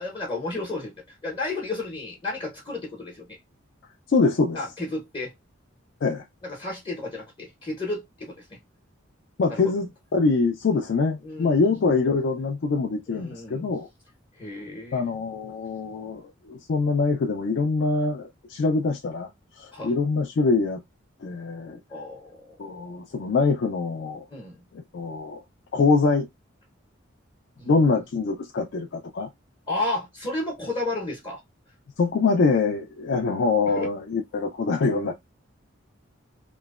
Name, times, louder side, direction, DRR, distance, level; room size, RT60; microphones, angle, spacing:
voice 1, 0.0-3.2 4.5-5.3 6.4-8.6 10.7-10.8 11.2-11.6 13.1-13.7 14.4-15.0 19.7-19.9 21.9-22.8 24.3-24.6 27.6-27.9 29.7-31.4 33.7-33.9, left 2 dB, 25° left, 0.8 m, -32 dB
voice 2, 4.1-4.6 6.0-6.2 9.4-13.9 14.9-19.3 19.5-20.8 21.2-21.8 22.6-24.2 24.9-25.4 25.7-26.3 27.7-29.3 32.0-35.1, left 4 dB, 60° left, 0.4 m, -24 dB
3.0 x 2.0 x 2.3 m
head